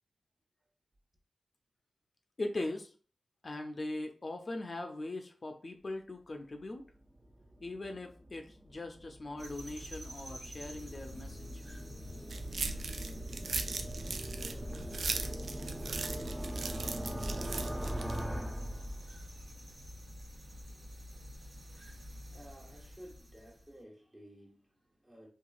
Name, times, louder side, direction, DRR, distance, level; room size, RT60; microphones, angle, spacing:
voice 1, 2.4-2.9 3.4-6.8 7.6-11.6, left 2 dB, 50° left, 0.4 m, -40 dB
sound 1, 6.6-19.5, equal, 15° right, 0.5 m, -42 dB
sound 2, 9.4-23.7, equal, 55° right, 1.2 m, -48 dB
sound 3, 12.3-18.2, right 4 dB, 75° right, 0.3 m, -39 dB
voice 2, 22.3-25.3, equal, 30° right, 1.1 m, -54 dB
2.9 x 2.4 x 2.3 m
cardioid pair, 45°, 0 cm